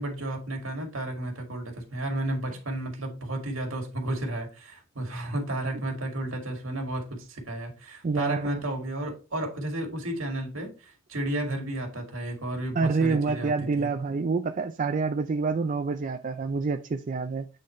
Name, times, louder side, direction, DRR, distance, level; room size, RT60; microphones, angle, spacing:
voice 1, 0.0-13.5 13.8-13.9, right 1 dB, 75° right, 2.1 m, -32 dB
voice 2, 8.0-8.6 12.8-17.5, right 4 dB, 40° right, 0.4 m, -27 dB
8.5 x 4.0 x 3.1 m
head